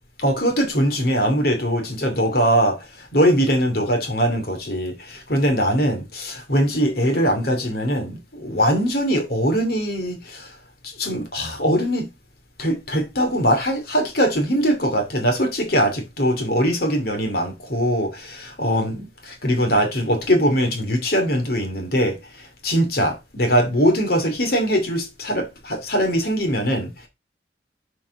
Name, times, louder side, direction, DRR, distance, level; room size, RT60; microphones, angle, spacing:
voice 1, 0.2-10.5 10.8-12.1 12.6-27.1, equal, 60° left, 2.5 m, -21 dB
7.2 x 4.8 x 4.8 m
head